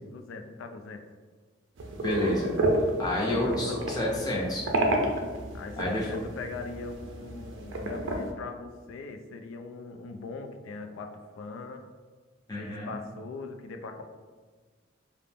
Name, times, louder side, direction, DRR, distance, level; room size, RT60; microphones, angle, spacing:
voice 1, 0.1-1.0 3.2-3.9 5.5-11.8 12.6-14.0, left 4 dB, 90° left, 6 dB, 0.3 m, -40 dB
sound 1, 1.8-8.3, right 1 dB, 75° right, 0.4 m, -31 dB
voice 2, 2.0-2.5 3.0-4.6 5.8-6.1 12.5-12.9, left 1 dB, 20° left, -6 dB, 0.6 m, -29 dB
2.5 x 2.0 x 3.3 m, 1.4 s
head